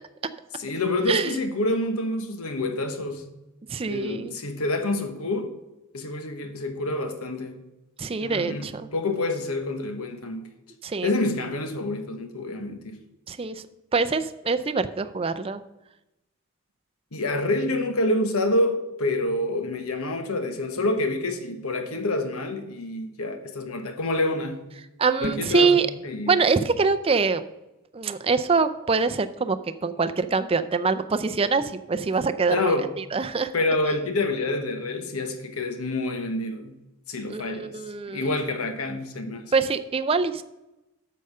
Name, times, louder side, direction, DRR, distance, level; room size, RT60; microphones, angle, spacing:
voice 1, 0.6-3.3 3.9-5.5 5.9-7.6 8.2-10.5 11.0-13.0 17.1-24.7 25.2-26.4 32.5-32.9 33.5-36.7 37.1-37.7 38.1-39.5, left 2 dB, 80° left, 1.1 m, -27 dB
voice 2, 1.1-1.4 3.7-4.3 8.0-8.9 10.8-11.1 13.3-13.6 13.9-15.6 25.0-25.9 26.3-27.4 27.9-29.6 29.8-32.8 33.1-33.5 37.3-38.3 39.5-40.4, right 4 dB, 25° right, 0.4 m, -24 dB
sound 1, 25.1-25.6, right 1 dB, 50° right, 0.9 m, -34 dB
8.4 x 6.7 x 5.5 m
head